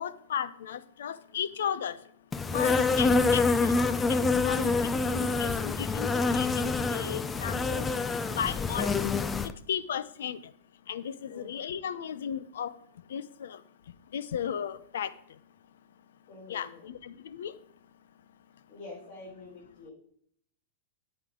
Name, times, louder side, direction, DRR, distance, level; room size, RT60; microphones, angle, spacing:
voice 1, 0.0-2.0 2.5-3.8 4.1-4.7 5.1-7.9 8.4-9.0 9.7-10.4 10.9-12.7 13.1-13.6 14.1-15.1 16.5-17.5, left 8 dB, 90° left, 16 dB, 0.8 m, -35 dB
Insect, 2.3-9.5, left 4 dB, 15° left, 0.5 m, -26 dB
voice 2, 4.4-4.8 8.6-8.8 11.2-11.6 16.3-16.9 18.7-19.9, left 4 dB, 45° left, -5 dB, 5.1 m, -45 dB
13.0 x 8.9 x 3.9 m, 0.66 s
supercardioid pair, 155°, 0 cm